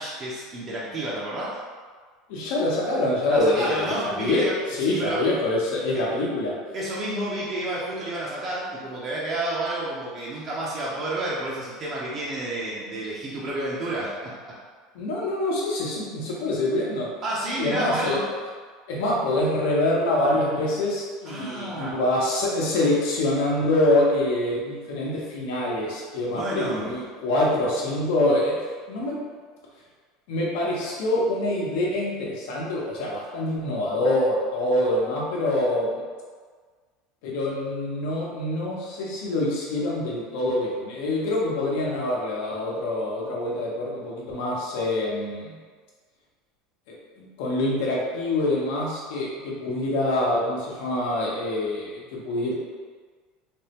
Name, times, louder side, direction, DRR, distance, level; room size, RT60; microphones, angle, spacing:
voice 1, 0.0-1.6 3.3-4.5 4.8-5.3 5.9-6.0 6.7-14.5 17.2-18.3 21.3-22.0 26.2-26.9, right 1 dB, 35° right, -6 dB, 0.6 m, -30 dB
voice 2, 2.3-6.5 14.9-17.1 17.6-18.2 18.9-28.5 28.9-29.2 30.3-35.9 37.2-45.6 46.9-52.5, left 1 dB, 75° left, -4 dB, 0.9 m, -25 dB
3.5 x 2.1 x 2.8 m, 1.5 s
supercardioid pair, 135°, 0 cm